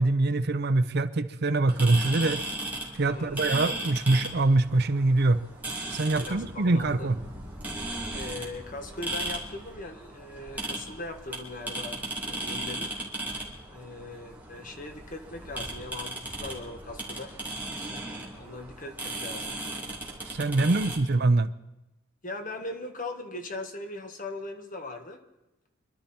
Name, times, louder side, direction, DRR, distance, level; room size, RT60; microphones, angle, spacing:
voice 1, 0.0-2.4 2.9-5.4 5.9-7.2 20.3-21.5, right 2 dB, 50° right, 13 dB, 0.6 m, -24 dB
sound 1, 1.7-21.0, right 1 dB, 10° right, 2.7 m, -37 dB
voice 2, 3.1-3.5 6.1-7.1 8.1-12.9 13.7-17.3 17.9-19.6 20.7-20.8 22.2-25.2, left 2 dB, 40° left, 5 dB, 1.6 m, -40 dB
26.0 x 12.0 x 4.4 m, 0.95 s
head